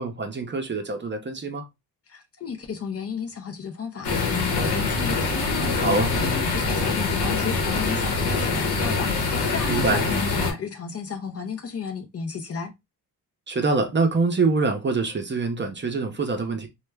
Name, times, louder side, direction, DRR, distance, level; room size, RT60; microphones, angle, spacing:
voice 1, 0.0-1.6 5.8-6.1 9.6-10.0 13.5-16.7, right 3 dB, 30° right, 0.6 m, -25 dB
voice 2, 2.1-12.7, left 6 dB, 40° left, 0.5 m, -33 dB
sound 1, 4.0-10.5, left 3 dB, 80° left, 0.9 m, -24 dB
2.2 x 2.0 x 3.3 m
cardioid pair, 70°, 38 cm